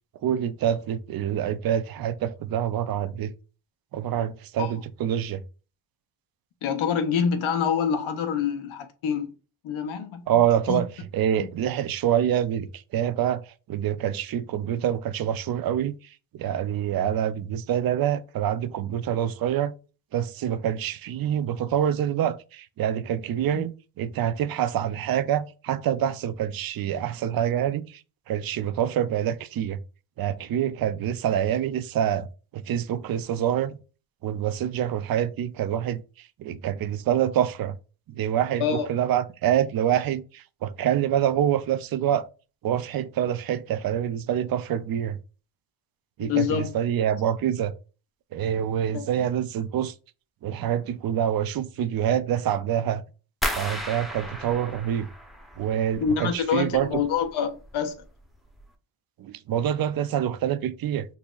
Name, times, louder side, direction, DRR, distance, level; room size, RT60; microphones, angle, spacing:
voice 1, 0.2-3.3 3.9-5.4 10.3-10.9 11.1-13.4 13.7-16.0 16.3-19.7 20.1-23.7 24.0-28.0 28.3-29.8 30.2-32.3 32.5-33.8 34.2-36.0 36.4-37.8 38.1-42.2 42.6-45.2 46.2-47.7 48.3-49.9 50.4-53.0 53.6-55.1 55.6-56.9 59.2-61.1, right 10 dB, 50° right, 0.5 m, -26 dB
voice 2, 6.6-9.3 9.6-10.2 10.7-10.8 11.3-11.5 23.5-23.6 38.6-38.9 46.2-46.7 48.9-49.0 56.0-57.9, left 7 dB, 90° left, 0.8 m, -26 dB
sound 1, 53.4-56.3 56.6-57.3 57.6-58.0 58.5-58.6, equal, ahead, 0.7 m, -34 dB
4.0 x 3.0 x 2.3 m
cardioid pair, 65°, 47 cm